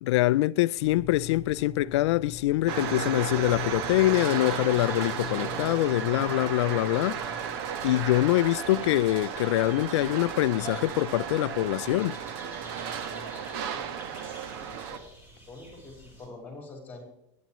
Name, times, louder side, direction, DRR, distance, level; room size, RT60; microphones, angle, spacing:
voice 1, 0.0-7.3 7.8-12.2, left 16 dB, 80° left, 0.4 m, -24 dB
sound 1, 0.8-8.5, left 13 dB, 40° left, 1.8 m, -44 dB
sound 2, 2.7-15.0, right 7 dB, 60° right, 1.4 m, -34 dB
sound 3, 4.4-16.3, equal, 10° right, 4.3 m, -50 dB
voice 2, 14.6-15.0 15.5-17.0, left 2 dB, 15° left, 4.4 m, -45 dB
23.0 x 10.5 x 3.1 m
supercardioid pair, 145°, 14 cm